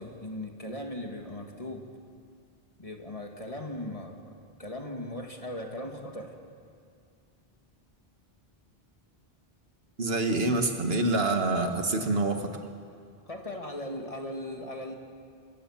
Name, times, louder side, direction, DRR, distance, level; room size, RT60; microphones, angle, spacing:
voice 1, 0.0-1.9 2.8-4.3 4.6-6.4 13.3-14.9, left 1 dB, 35° left, 3 dB, 2.0 m, -38 dB
voice 2, 10.0-12.5, right 2 dB, 75° right, 5 dB, 1.8 m, -26 dB
27.5 x 17.5 x 7.3 m, 2.3 s
omnidirectional pair, 1.0 m